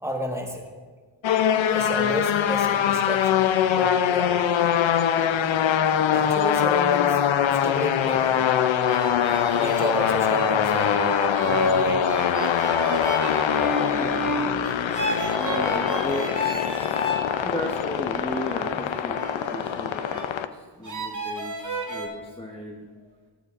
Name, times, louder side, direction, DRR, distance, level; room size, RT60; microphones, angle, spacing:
voice 1, 0.0-0.6 1.7-4.5 6.1-8.5 9.5-11.1 11.4-12.1, left 1 dB, 5° right, 1 dB, 1.3 m, -32 dB
sound 1, 1.2-20.5, left 9 dB, 70° left, 0.5 m, -23 dB
sound 2, 8.9-17.3 17.8-20.3 20.8-22.1, equal, 40° right, 1.3 m, -30 dB
voice 2, 14.0-15.0 15.3-16.4 16.7-17.0 17.4-23.0, equal, 10° left, -1 dB, 0.9 m, -35 dB
13.5 x 7.9 x 2.5 m, 1.5 s
cardioid pair, 60°, 48 cm